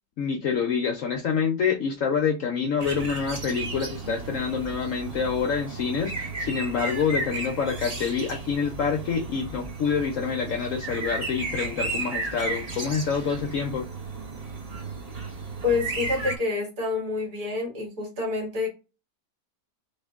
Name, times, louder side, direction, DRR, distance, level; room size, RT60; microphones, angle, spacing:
voice 1, 0.2-13.9, left 6 dB, 65° left, 0.8 m, -27 dB
sound 1, 2.8-16.4, right 3 dB, 45° right, 0.5 m, -34 dB
voice 2, 15.6-18.7, left 4 dB, 60° right, 2.0 m, -27 dB
3.2 x 2.8 x 3.4 m
omnidirectional pair, 1.8 m